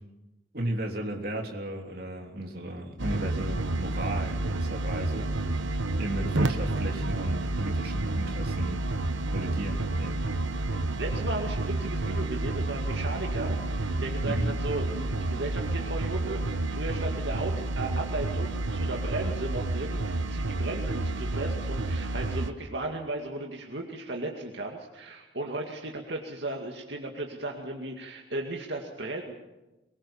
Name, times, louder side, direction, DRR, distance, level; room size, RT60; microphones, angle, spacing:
voice 1, 0.5-8.9 9.3-10.3 14.2-14.5, right 1 dB, 50° right, 1 dB, 3.4 m, -35 dB
sound 1, 3.0-22.5, right 2 dB, 90° right, 1.1 m, -30 dB
voice 2, 11.0-29.3, right 2 dB, 70° right, 1 dB, 2.3 m, -35 dB
23.5 x 22.0 x 7.3 m, 1.0 s
head